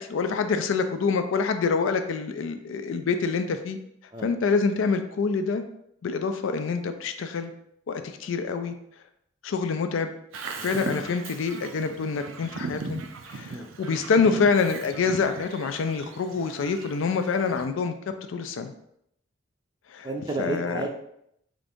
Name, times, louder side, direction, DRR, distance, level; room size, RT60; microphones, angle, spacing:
voice 1, 0.0-3.8 4.2-5.6 6.0-7.5 7.9-8.7 9.4-10.1 10.6-17.9 18.3-18.7 19.9-20.1 20.4-20.9, left 5 dB, 80° left, 8 dB, 0.4 m, -26 dB
Bird vocalization bird call bird song, 10.3-17.7, right 4 dB, 80° right, 0.4 m, -39 dB
voice 2, 20.0-20.9, right 2 dB, 20° right, 2 dB, 0.4 m, -32 dB
3.8 x 2.6 x 3.5 m, 0.73 s
head